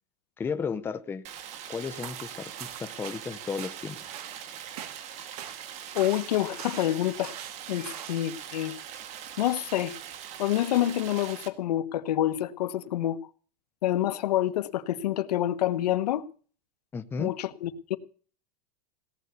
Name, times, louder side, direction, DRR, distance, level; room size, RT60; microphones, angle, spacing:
voice 1, 0.4-1.2 1.7-4.0 16.9-17.3, left 5 dB, 10° left, 0.6 m, -34 dB
Stream, 1.2-11.5, right 9 dB, 35° right, 1.8 m, -42 dB
sound 1, 2.0-8.4, right 10 dB, 75° right, 2.0 m, -44 dB
voice 2, 5.9-7.4 7.7-8.7 9.4-10.0 10.4-13.3 13.8-16.3 17.2-18.0, left 13 dB, 85° left, 1.3 m, -27 dB
17.5 x 8.1 x 8.1 m
supercardioid pair, 155°, 20 cm